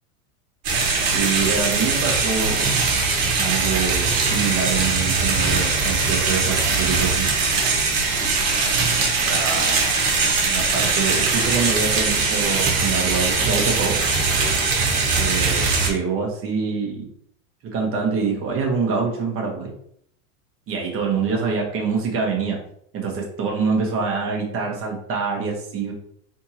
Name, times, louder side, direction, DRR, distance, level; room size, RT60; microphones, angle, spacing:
sound 1, 0.6-15.9, right 4 dB, 50° right, 1.5 m, -21 dB
voice 1, 1.1-2.7 3.4-7.3 8.4-9.9 10.4-14.0 15.2-17.0 17.6-19.7 20.7-22.6 22.9-25.9, right 5 dB, 30° right, 0 dB, 1.3 m, -25 dB
4.4 x 3.7 x 2.9 m, 0.69 s
supercardioid pair, 130°, 42 cm